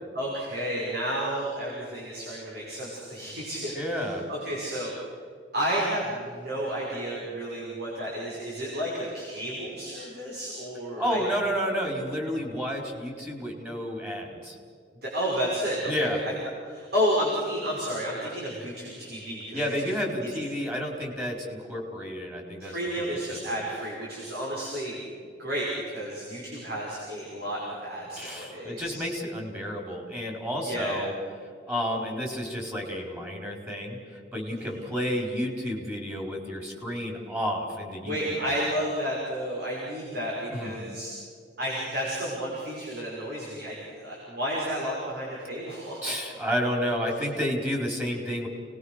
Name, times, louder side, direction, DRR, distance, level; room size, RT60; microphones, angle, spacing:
voice 1, 0.1-4.9 5.5-11.2 15.0-16.3 16.7-19.9 20.2-20.4 22.6-25.0 25.4-29.0 30.6-31.0 34.5-34.7 38.0-41.1 41.6-46.3, equal, 60° right, -4 dB, 5.8 m, -31 dB
voice 2, 3.7-4.3 11.0-14.6 15.9-16.2 19.5-23.6 28.2-31.1 31.7-38.6 40.5-40.9 46.0-48.5, equal, 15° right, 0 dB, 4.3 m, -31 dB
30.0 x 20.0 x 6.6 m, 2.2 s
head